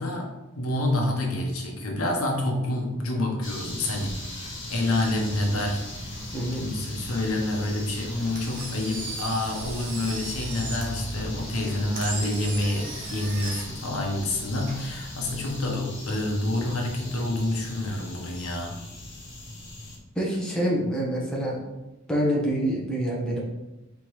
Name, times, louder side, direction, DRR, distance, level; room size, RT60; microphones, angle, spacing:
voice 1, 0.0-5.8 6.6-18.7, left 1 dB, 80° left, 1 dB, 0.9 m, -28 dB
sound 1, 3.4-20.0, left 1 dB, 60° left, 1.4 m, -38 dB
voice 2, 6.3-6.7 20.1-21.6 22.1-23.4, right 1 dB, 5° left, -4 dB, 0.8 m, -26 dB
Engine, 8.2-15.5, right 3 dB, 40° right, 0.9 m, -38 dB
4.3 x 3.4 x 3.1 m, 1.0 s
head